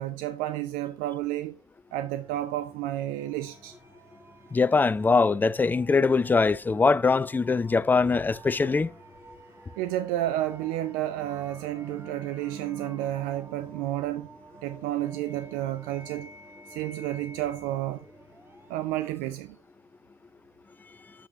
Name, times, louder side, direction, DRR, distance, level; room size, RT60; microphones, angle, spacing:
voice 1, 0.0-1.6 1.9-3.8 9.8-14.3 14.6-16.3 16.7-18.1 18.7-19.6, right 14 dB, 60° right, 0.6 m, -31 dB
sound 1, 2.2-19.7, right 1 dB, 15° right, 1.5 m, -50 dB
voice 2, 4.5-8.9, left 4 dB, 10° left, 0.4 m, -22 dB
8.2 x 7.3 x 2.8 m
hypercardioid pair, 65°, 16 cm